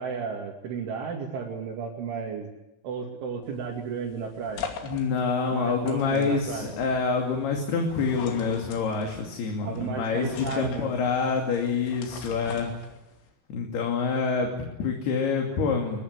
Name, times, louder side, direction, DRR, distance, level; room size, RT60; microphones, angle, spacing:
voice 1, 0.0-2.5 2.8-4.6 5.5-6.7 9.6-11.0, right 6 dB, 70° right, -2 dB, 4.9 m, -33 dB
sound 1, 3.4-13.3, left 6 dB, 90° left, 5.3 m, -42 dB
voice 2, 4.8-12.7 13.5-16.0, left 5 dB, 55° left, 2 dB, 4.4 m, -27 dB
23.0 x 22.5 x 9.7 m, 0.92 s
omnidirectional pair, 5.7 m